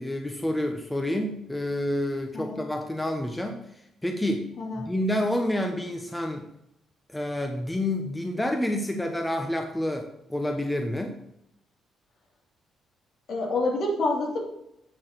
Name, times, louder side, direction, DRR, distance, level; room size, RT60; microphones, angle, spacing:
voice 1, 0.0-4.5 4.8-6.5 7.1-11.2, left 1 dB, 10° left, 4 dB, 0.9 m, -29 dB
voice 2, 4.6-4.9 13.3-14.4, left 2 dB, 65° left, -2 dB, 3.0 m, -27 dB
9.1 x 4.1 x 6.2 m, 0.79 s
cardioid pair, 90°, 0 cm